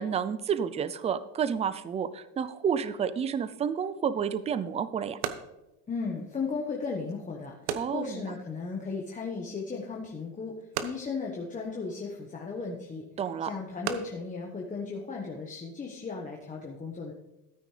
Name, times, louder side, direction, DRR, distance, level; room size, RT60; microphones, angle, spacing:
voice 1, 0.0-5.2 7.8-8.2 13.2-13.5, right 7 dB, 15° right, 15 dB, 0.4 m, -30 dB
sound 1, 4.1-15.5, right 9 dB, 90° right, 1.0 m, -42 dB
voice 2, 5.9-10.6 10.8-13.0 13.4-17.1, left 4 dB, 20° left, -1 dB, 1.3 m, -36 dB
14.0 x 8.9 x 3.3 m, 0.93 s
supercardioid pair, 125°, 41 cm